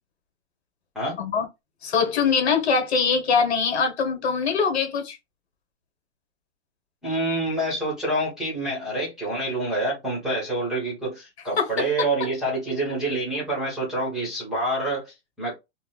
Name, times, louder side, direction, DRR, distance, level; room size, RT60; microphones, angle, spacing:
voice 1, 1.8-5.2 11.6-11.7, left 5 dB, 65° left, 1.2 m, -22 dB
voice 2, 7.0-15.5, right 1 dB, ahead, 1.0 m, -27 dB
4.0 x 2.1 x 2.3 m
hypercardioid pair, 165°, 36 cm